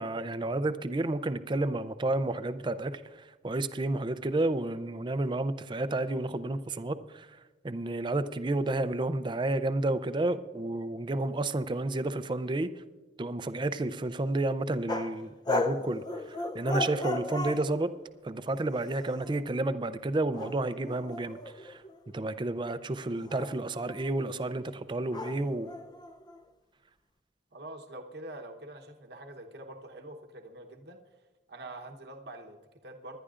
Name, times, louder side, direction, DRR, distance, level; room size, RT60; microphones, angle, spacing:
voice 1, 0.0-7.4 7.6-12.7 13.2-17.9 18.2-21.8 22.1-25.7, right 2 dB, 25° right, 0.5 m, -31 dB
sound 1, 14.9-15.2 15.4-17.7 18.5-19.4 20.3-22.2 23.1-24.2 25.1-26.4, left 2 dB, 25° left, 0.6 m, -35 dB
voice 2, 27.5-31.2 31.5-33.2, right 1 dB, 65° right, 1.0 m, -45 dB
25.5 x 11.0 x 2.5 m
head